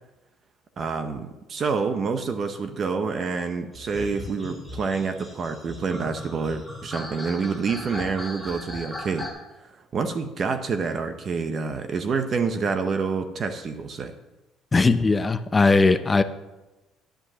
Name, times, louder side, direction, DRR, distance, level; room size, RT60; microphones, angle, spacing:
voice 1, 0.8-9.3 9.7-14.1, right 5 dB, 35° right, 8 dB, 0.8 m, -27 dB
sound 1, 3.7-9.3, left 1 dB, 10° right, 2.8 m, -38 dB
voice 2, 14.7-16.2, left 3 dB, 20° left, 11 dB, 0.5 m, -19 dB
10.0 x 5.3 x 7.3 m, 1.0 s
cardioid pair, 135°, 0 cm